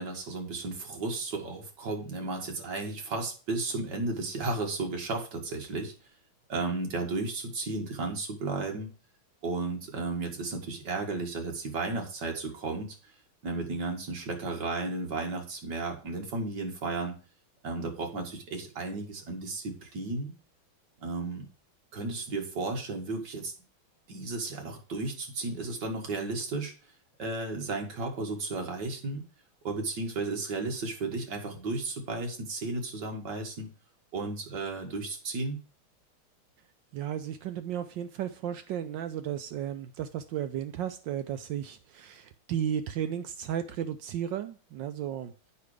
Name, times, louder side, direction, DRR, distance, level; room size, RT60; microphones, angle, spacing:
voice 1, 0.0-5.9 6.5-8.9 9.4-13.0 13.4-17.2 17.6-20.3 21.0-21.5 21.9-23.5 24.1-26.7 27.2-29.2 29.6-33.7 34.1-35.6, right 3 dB, 55° right, 2 dB, 2.3 m, -34 dB
voice 2, 36.9-45.3, right 10 dB, 75° right, 9 dB, 1.1 m, -34 dB
8.4 x 5.7 x 4.8 m, 0.37 s
omnidirectional pair, 2.4 m